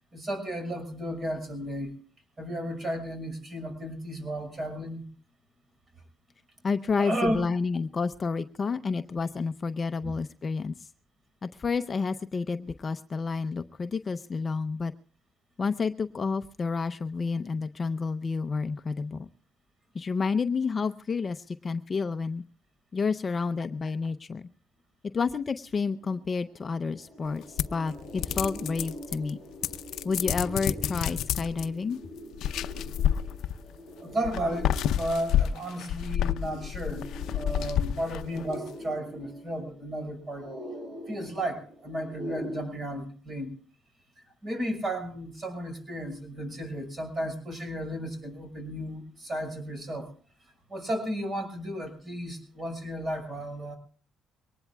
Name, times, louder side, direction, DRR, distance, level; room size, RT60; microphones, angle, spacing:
voice 1, 0.1-2.0 2.4-5.0 7.0-7.5 10.0-10.1 34.0-37.1 37.3-40.5 41.1-43.5 44.4-50.1 50.7-53.8, right 1 dB, 30° right, 7 dB, 5.9 m, -33 dB
voice 2, 6.6-10.7 11.4-14.9 15.6-19.3 19.9-22.4 22.9-24.4 25.1-29.4 30.0-32.0, left 4 dB, 30° left, 10 dB, 0.6 m, -30 dB
sound 1, 26.0-26.1 26.4-42.6, equal, 70° right, 7.5 m, -43 dB
sound 2, 27.6-29.3 29.6-31.7 32.3-33.8 34.2-38.5, left 10 dB, 70° left, 0.6 m, -29 dB
23.5 x 19.0 x 2.3 m, 0.38 s
cardioid pair, 115°, 0 cm